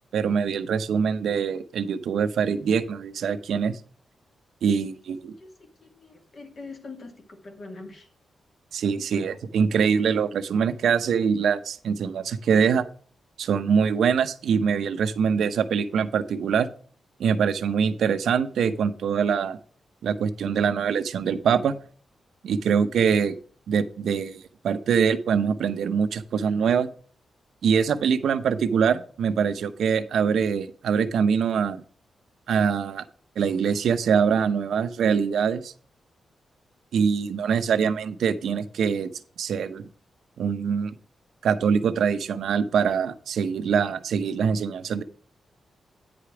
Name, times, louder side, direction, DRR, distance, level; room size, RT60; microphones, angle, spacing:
voice 1, 0.1-3.8 4.6-5.3 8.7-12.9 13.4-16.7 17.2-19.6 20.0-21.8 22.4-23.3 23.7-26.9 27.6-31.8 32.5-33.0 33.4-35.7 36.9-39.1 39.4-39.9 40.4-40.9 41.4-45.0, right 6 dB, 85° right, 11 dB, 0.7 m, -24 dB
voice 2, 5.8-8.1, left 3 dB, 45° left, 4 dB, 1.6 m, -43 dB
9.3 x 5.0 x 5.9 m, 0.43 s
wide cardioid pair, 125°, 0 cm